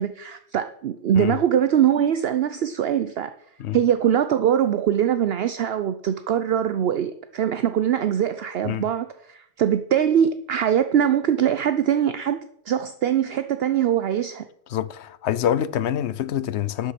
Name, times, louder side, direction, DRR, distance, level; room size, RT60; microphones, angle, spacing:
voice 1, 0.0-3.3 3.7-14.4, right 9 dB, 60° right, 0.8 m, -22 dB
voice 2, 14.7-16.9, left 10 dB, 70° left, 0.9 m, -26 dB
12.5 x 8.3 x 5.9 m
omnidirectional pair, 1.2 m